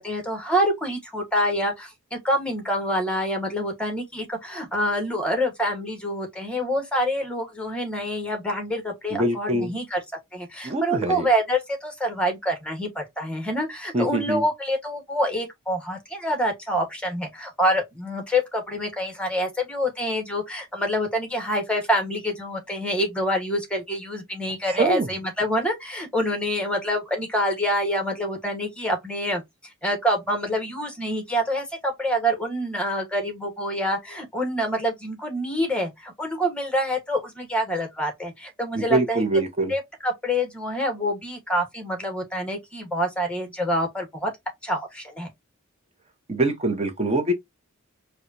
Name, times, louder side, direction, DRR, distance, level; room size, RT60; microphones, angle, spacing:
voice 1, 0.0-10.0 10.3-29.4 29.8-39.2 39.7-44.3 44.6-45.3, equal, 5° left, 1.3 m, -26 dB
voice 2, 9.1-9.7 10.6-11.3 13.9-14.4 24.7-25.1 38.7-39.7 46.3-47.3, right 2 dB, 30° right, 0.9 m, -24 dB
4.8 x 2.4 x 2.7 m
head